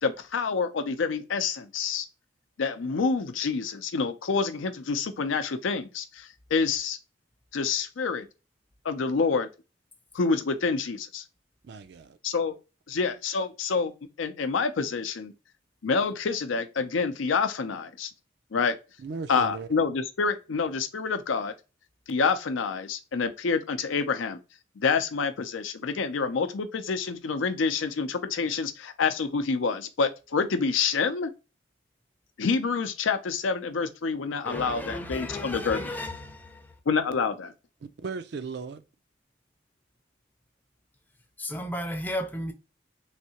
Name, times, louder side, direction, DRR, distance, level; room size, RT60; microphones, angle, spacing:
voice 1, 0.0-2.1 2.6-7.0 7.5-8.3 8.8-9.5 10.1-11.2 12.2-12.5 12.9-13.9 14.2-15.3 15.8-18.1 18.5-18.8 19.3-21.5 22.1-24.4 24.8-31.3 32.4-35.9 36.9-37.5, left 5 dB, 90° left, 0.5 m, -27 dB
voice 2, 11.6-12.2 19.0-19.8 38.0-38.8, right 4 dB, 60° right, 0.4 m, -36 dB
voice 3, 34.4-36.6 41.4-42.5, left 1 dB, 10° left, 0.5 m, -34 dB
3.3 x 2.7 x 2.8 m
head